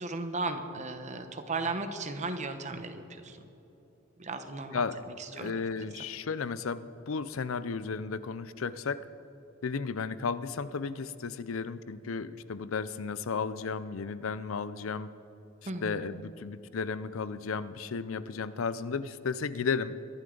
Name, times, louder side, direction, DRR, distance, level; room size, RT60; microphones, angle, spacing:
voice 1, 0.0-3.4 4.2-5.6 15.7-16.0, right 3 dB, 35° right, 8 dB, 1.0 m, -36 dB
voice 2, 5.3-9.0 9.6-15.1 15.8-20.0, left 5 dB, 80° left, 15 dB, 0.5 m, -34 dB
23.0 x 11.0 x 3.9 m, 3.0 s
head